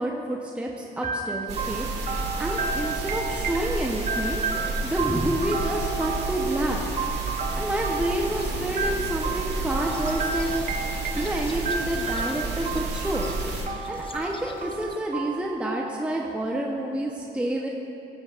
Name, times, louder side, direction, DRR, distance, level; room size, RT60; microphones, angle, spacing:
voice 1, 0.0-1.9 2.4-4.4 4.8-6.9 7.5-10.6 11.1-13.3 13.9-17.7, right 1 dB, 5° right, -1 dB, 0.8 m, -29 dB
sound 1, 1.0-16.8, right 5 dB, 35° right, 0.9 m, -33 dB
sound 2, 1.5-13.7, right 2 dB, 60° right, 2.2 m, -31 dB
sound 3, 8.2-15.0, left 3 dB, 25° left, 0.7 m, -44 dB
18.5 x 7.5 x 2.5 m, 3.0 s
cardioid pair, 90°, 20 cm